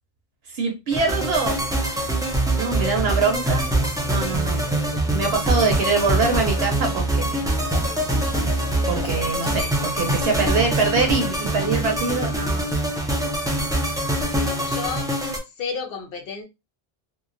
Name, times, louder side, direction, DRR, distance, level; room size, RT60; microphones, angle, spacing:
voice 1, 0.5-2.1 2.6-3.6 4.1-4.6 5.1-7.6 8.8-12.9, right 4 dB, 70° right, 0.9 m, -24 dB
sound 1, 0.9-15.4, right 1 dB, 5° right, 0.4 m, -24 dB
Cough, 4.8-5.0 5.9-6.7 7.7-8.0 8.9-10.1 10.7-11.1 11.7-11.8 13.6-13.7, left 5 dB, 90° left, 0.9 m, -39 dB
voice 2, 14.3-15.1 15.5-16.4, left 5 dB, 60° left, 0.9 m, -32 dB
3.0 x 2.2 x 2.5 m
omnidirectional pair, 1.1 m